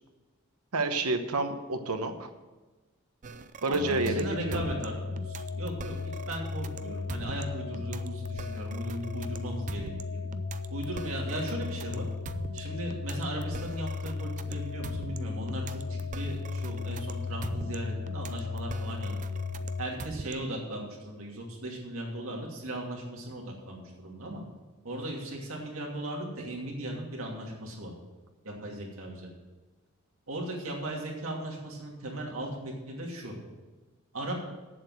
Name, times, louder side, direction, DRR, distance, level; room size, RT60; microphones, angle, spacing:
voice 1, 0.7-2.3 3.6-4.6, right 2 dB, 85° right, 7 dB, 1.1 m, -29 dB
sound 1, 3.2-20.6, right 4 dB, 35° right, 0.5 m, -43 dB
voice 2, 3.7-10.3 10.7-12.1 12.5-19.1 19.8-24.4 24.8-27.9 28.4-29.3 30.3-33.3 34.1-34.3, right 1 dB, 65° right, -1 dB, 2.7 m, -37 dB
sound 2, 3.8-19.9, left 4 dB, 70° left, 0.9 m, -36 dB
8.1 x 7.6 x 7.7 m, 1.2 s
head